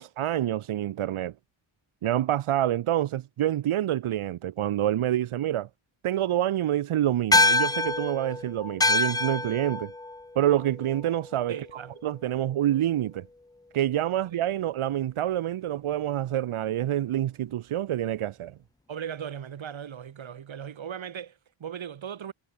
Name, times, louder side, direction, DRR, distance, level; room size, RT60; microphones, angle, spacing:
voice 1, 0.0-1.3 2.0-5.7 6.0-9.9 10.4-11.5 12.0-13.3 13.7-18.6, right 12 dB, 90° right, 1.1 m, -27 dB
sound 1, 7.3-12.0, left 2 dB, 10° left, 0.5 m, -26 dB
voice 2, 11.5-12.0 14.3-14.4 18.9-22.3, right 8 dB, 70° right, 2.6 m, -38 dB
cardioid pair, 85°, 48 cm